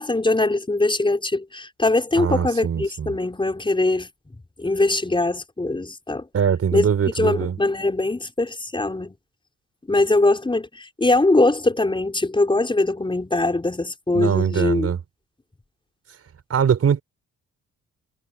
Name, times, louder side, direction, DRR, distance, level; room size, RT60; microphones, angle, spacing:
voice 1, 0.0-4.1 4.6-6.2 6.7-6.9 7.2-9.2 9.9-14.9, left 2 dB, 15° left, 5.4 m, -22 dB
voice 2, 2.2-3.1 6.3-7.6 14.1-15.0 16.5-17.0, right 7 dB, 50° right, 5.3 m, -22 dB
cardioid pair, 90°, 30 cm